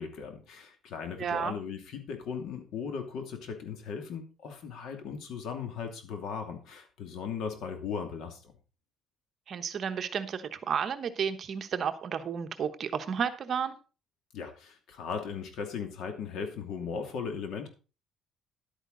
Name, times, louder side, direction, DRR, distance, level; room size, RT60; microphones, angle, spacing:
voice 1, 0.0-8.5 14.3-17.7, left 6 dB, 65° left, 5 dB, 2.6 m, -37 dB
voice 2, 1.2-1.5 9.5-13.8, right 7 dB, 40° right, 8 dB, 1.1 m, -32 dB
11.5 x 9.0 x 4.0 m, 0.33 s
cardioid pair, 145°, 0 cm